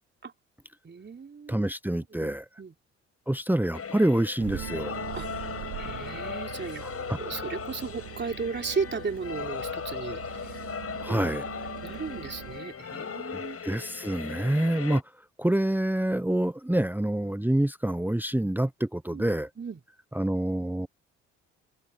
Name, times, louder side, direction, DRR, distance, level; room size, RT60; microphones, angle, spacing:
voice 1, 0.8-1.7 2.1-2.7 5.1-5.3 5.8-6.8 7.2-10.6 11.1-11.3 11.8-13.6 19.1-19.3 19.6-19.8, right 5 dB, 30° right, 3.9 m, -35 dB
voice 2, 1.5-2.4 3.3-5.0 6.8-7.2 11.0-11.4 13.6-15.0 15.4-19.5 20.1-20.9, right 1 dB, 5° right, 1.1 m, -27 dB
sound 1, 3.7-15.0, left 6 dB, 40° left, 7.9 m, -38 dB
sound 2, 4.4-12.6, right 19 dB, 70° right, 2.6 m, -42 dB
open air
hypercardioid pair, 50°, 35 cm